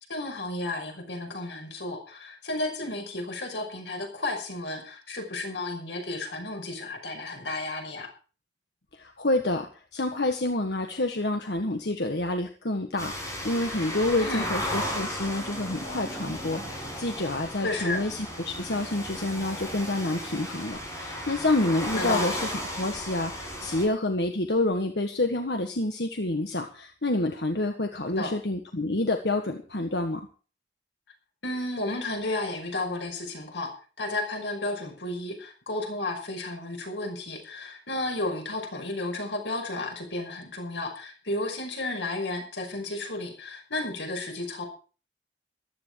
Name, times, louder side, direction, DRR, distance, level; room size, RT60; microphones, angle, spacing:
voice 1, 0.1-8.1 14.2-14.5 17.6-18.0 21.9-22.4 28.1-28.4 31.4-44.6, left 2 dB, 90° left, 3 dB, 5.6 m, -33 dB
voice 2, 8.9-30.3, left 2 dB, 65° left, 4 dB, 1.7 m, -28 dB
sound 1, 13.0-23.8, equal, 20° left, 7.7 m, -35 dB
15.0 x 13.0 x 4.8 m, 0.38 s
head